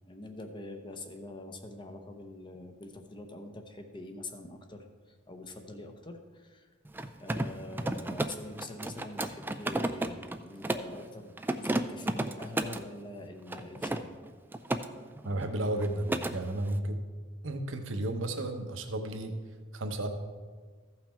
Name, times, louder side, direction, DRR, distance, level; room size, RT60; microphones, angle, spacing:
voice 1, 0.1-4.8 5.3-6.7 7.2-14.1, left 2 dB, 25° left, 5 dB, 0.8 m, -45 dB
Mechanisms, 6.9-11.0 11.4-12.9 13.5-14.9 15.2-15.5 15.8-16.4, right 1 dB, 10° right, 0.3 m, -33 dB
voice 2, 15.2-17.0 17.4-19.3 19.7-20.1, right 1 dB, 70° right, 6 dB, 1.0 m, -33 dB
14.5 x 5.9 x 4.4 m, 1.5 s
head